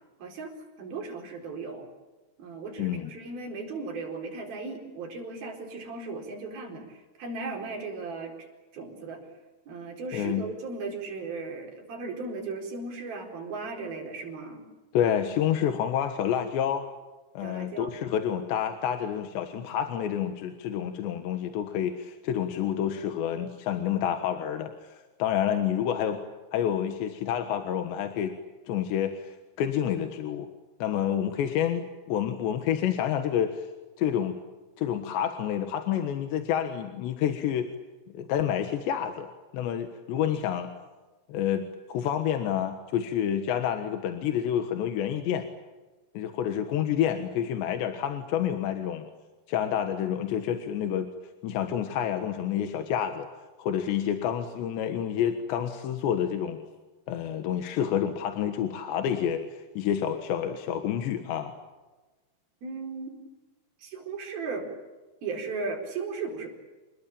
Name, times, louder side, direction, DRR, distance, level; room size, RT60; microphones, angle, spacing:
voice 1, 0.2-0.5 0.8-1.9 2.4-8.3 8.7-9.2 9.7-14.6 17.4-18.0 62.6-63.1 63.8-64.7 65.2-66.5, right 4 dB, 55° right, 2 dB, 6.2 m, -36 dB
voice 2, 2.8-3.1 10.1-10.5 14.9-16.8 17.4-26.2 26.5-28.3 28.7-30.5 30.8-33.7 34.0-34.4 34.8-37.7 38.1-39.3 39.5-40.7 41.3-45.5 46.2-49.1 49.5-51.1 51.4-53.3 53.6-56.6 57.1-61.5, left 9 dB, 75° left, 7 dB, 3.6 m, -28 dB
28.0 x 21.0 x 8.9 m, 1.2 s
omnidirectional pair, 5.4 m